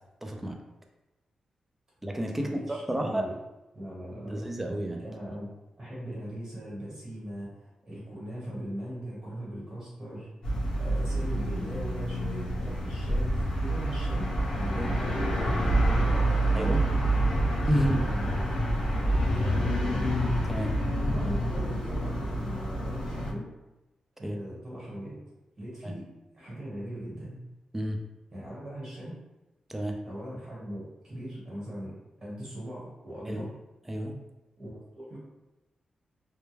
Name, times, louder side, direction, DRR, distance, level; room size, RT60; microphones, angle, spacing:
voice 1, 0.2-0.6 2.0-3.3 4.2-5.0 14.8-15.0 16.5-16.8 17.7-18.1 20.5-20.7 24.2-24.4 25.8-25.9 27.7-28.0 29.7-30.0 33.3-33.5 33.9-34.2, right 1 dB, 10° right, 2 dB, 0.3 m, -30 dB
voice 2, 2.3-3.3 3.7-4.5 5.0-5.5 5.8-10.5 10.8-17.1 17.7-18.5 19.2-20.0 21.0-23.5 24.2-25.2 25.6-26.0 26.3-27.4 28.3-29.2 30.0-33.5 34.6-35.2, equal, 30° right, -6 dB, 1.2 m, -40 dB
sound 1, 10.4-23.3, right 1 dB, 40° left, 0.6 m, -27 dB
2.2 x 2.2 x 3.1 m, 1.0 s
wide cardioid pair, 135°, 2 cm